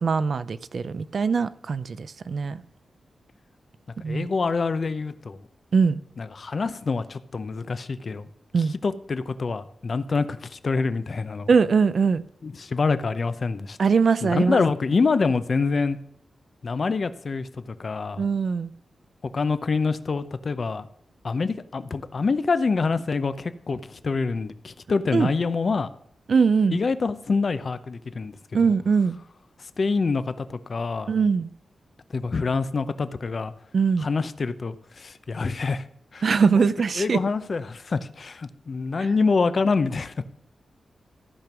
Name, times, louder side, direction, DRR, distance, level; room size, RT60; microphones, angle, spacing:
voice 1, 0.0-2.6 4.0-4.3 5.7-6.0 8.5-8.7 11.5-12.2 13.8-14.6 18.2-18.7 25.1-25.3 26.3-26.8 28.5-29.2 31.1-31.5 33.7-34.1 36.2-37.2, right 5 dB, 55° right, 0.5 m, -21 dB
voice 2, 4.1-5.4 6.2-8.3 8.6-11.5 12.4-13.8 14.2-16.0 16.6-18.3 19.3-20.9 21.2-25.9 26.7-28.4 29.6-31.1 32.1-33.5 34.0-35.9 36.1-36.3 36.5-36.6 37.0-40.2, left 4 dB, 45° left, 0.7 m, -26 dB
15.0 x 5.3 x 6.0 m
wide cardioid pair, 135°, 0 cm